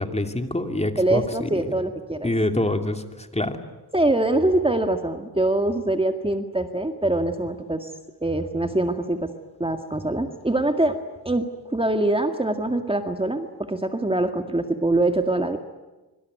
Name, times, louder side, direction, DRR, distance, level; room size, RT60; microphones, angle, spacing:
voice 1, 0.0-1.8 2.2-3.6, left 1 dB, 15° left, 6 dB, 2.7 m, -26 dB
voice 2, 1.0-2.3 3.9-7.9 8.2-9.3 9.6-11.0 11.3-15.6, right 2 dB, 15° right, 6 dB, 1.9 m, -24 dB
25.5 x 25.0 x 9.3 m, 1.1 s
wide cardioid pair, 95°, 39 cm